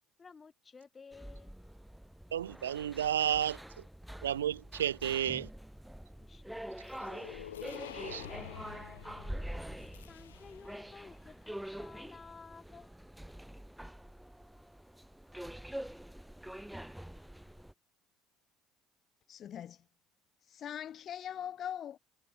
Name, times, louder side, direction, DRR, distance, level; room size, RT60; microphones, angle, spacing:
voice 1, 0.2-1.5 6.2-7.1 7.9-9.5 10.1-12.9, left 5 dB, 30° left, 3.9 m, -55 dB
sound 1, 1.1-17.7, right 1 dB, 5° right, 1.8 m, -46 dB
voice 2, 2.3-3.6 4.2-5.5 8.0-8.2, right 10 dB, 90° right, 0.9 m, -32 dB
sound 2, 6.8-10.9, left 12 dB, 85° left, 2.0 m, -48 dB
voice 3, 19.3-19.8 20.4-22.0, left 10 dB, 50° left, 1.0 m, -41 dB
hypercardioid pair, 65°, 0 cm